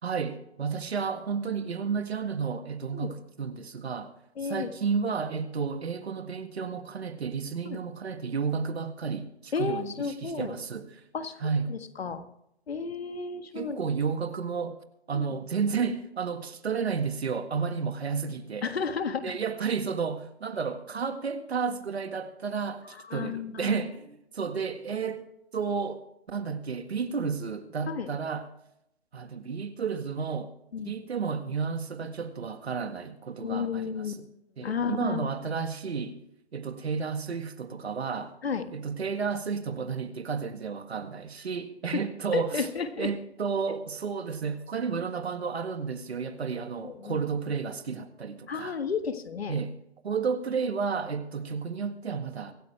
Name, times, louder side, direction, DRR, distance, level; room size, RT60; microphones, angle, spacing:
voice 1, 0.0-4.1 4.4-9.9 10.2-11.0 11.4-11.7 13.5-14.8 15.1-18.7 19.2-25.2 25.5-28.5 29.1-30.5 30.9-34.2 34.6-36.2 36.5-38.3 38.7-42.7 43.0-48.8 49.5-49.7 50.0-52.5, right 5 dB, 70° right, 1.8 m, -32 dB
voice 2, 4.4-4.7 7.6-7.8 9.5-10.6 11.1-11.4 11.7-12.2 12.7-13.8 15.1-15.2 18.6-19.4 22.9-23.8 27.9-28.1 30.7-30.9 33.4-34.1 34.6-35.3 38.4-38.7 41.9-42.0 42.3-43.1 46.8-47.2 48.5-49.6, left 6 dB, 65° left, 1.6 m, -32 dB
24.0 x 9.6 x 3.4 m
figure-of-eight pair, 145°, 33 cm